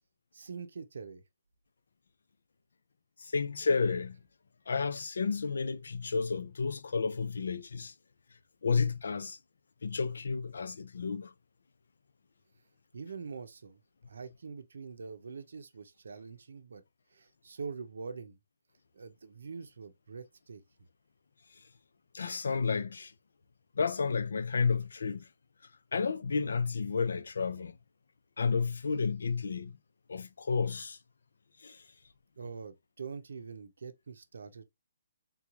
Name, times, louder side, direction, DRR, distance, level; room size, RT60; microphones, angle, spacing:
voice 1, 0.3-1.2 12.9-13.8 14.1-16.8 17.1-18.4 18.9-20.6 32.4-34.6, right 5 dB, 85° right, 0.6 m, -44 dB
voice 2, 3.2-4.2 4.7-7.9 8.6-9.4 9.8-11.3 22.1-23.1 23.8-25.3 25.9-27.8 28.4-29.7 30.1-31.0 31.6-31.8, left 5 dB, 90° left, 0.4 m, -31 dB
3.6 x 3.0 x 2.3 m
hypercardioid pair, 175°, 0 cm